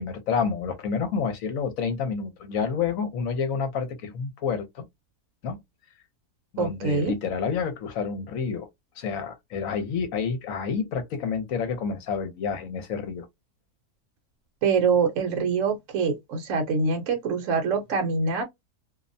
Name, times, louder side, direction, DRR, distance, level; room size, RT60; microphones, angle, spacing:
voice 1, 0.0-4.9 5.4-5.6 6.5-8.7 9.0-13.3, left 6 dB, 70° left, 1.0 m, -29 dB
voice 2, 6.6-7.1 14.6-18.4, right 5 dB, 65° right, 1.0 m, -24 dB
2.6 x 2.1 x 2.5 m
omnidirectional pair, 1.6 m